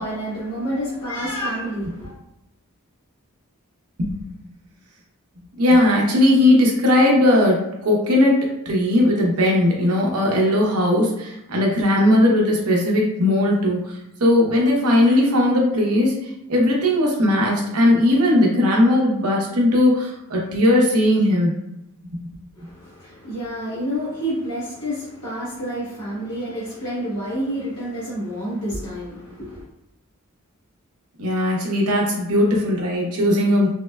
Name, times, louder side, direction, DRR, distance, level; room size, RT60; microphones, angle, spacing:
voice 1, 0.0-2.1 22.5-29.6, equal, 80° left, -8 dB, 1.1 m, -29 dB
voice 2, 5.6-16.1 16.5-21.5 31.2-33.7, left 1 dB, 75° right, -2 dB, 0.8 m, -18 dB
3.5 x 2.1 x 2.2 m, 0.89 s
head